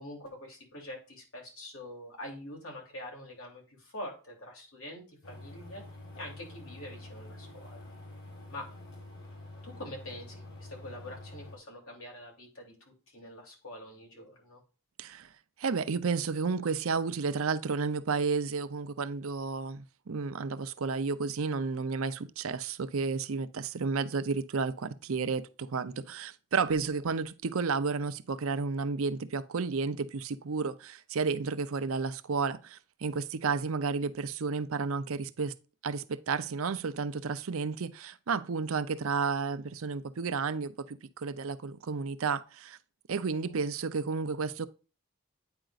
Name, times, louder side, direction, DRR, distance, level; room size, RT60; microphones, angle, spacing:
voice 1, 0.0-5.8 6.1-7.9 8.5-8.7 9.6-14.6 43.3-43.6, left 1 dB, 80° left, 3.0 m, -45 dB
sound 1, 5.2-11.6, left 2 dB, 50° left, 1.9 m, -47 dB
voice 2, 15.0-15.3 15.6-35.5 35.8-42.8 43.1-44.7, right 4 dB, 75° right, 0.6 m, -32 dB
8.9 x 5.1 x 2.4 m
head